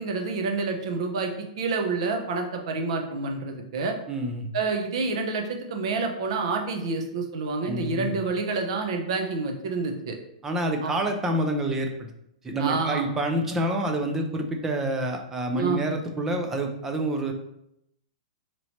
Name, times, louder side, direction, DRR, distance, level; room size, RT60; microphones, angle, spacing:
voice 1, 0.0-3.9 4.5-10.2 10.8-10.9 12.6-13.0 15.6-15.8, right 4 dB, 50° right, 4 dB, 0.7 m, -28 dB
voice 2, 4.1-4.5 7.7-8.2 10.4-12.1 12.4-17.3, right 1 dB, 10° right, 4 dB, 0.3 m, -27 dB
3.0 x 2.9 x 4.1 m, 0.79 s
hypercardioid pair, 170°, 4 cm